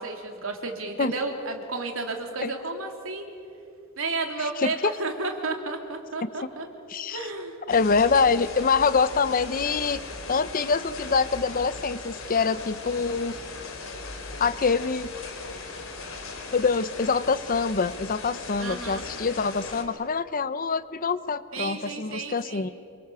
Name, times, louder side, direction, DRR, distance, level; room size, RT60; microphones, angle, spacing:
voice 1, 0.0-3.3 4.0-6.7 7.1-7.5 18.6-19.0 21.5-22.7, right 3 dB, 80° right, 3 dB, 3.2 m, -32 dB
voice 2, 4.6-4.9 6.2-6.3 6.9-7.2 7.7-10.0 10.3-13.4 14.4-15.1 16.5-22.7, left 5 dB, 45° left, 15 dB, 0.7 m, -25 dB
sound 1, 7.7-19.8, left 3 dB, 75° left, 3.3 m, -39 dB
27.0 x 24.0 x 6.9 m, 2.7 s
head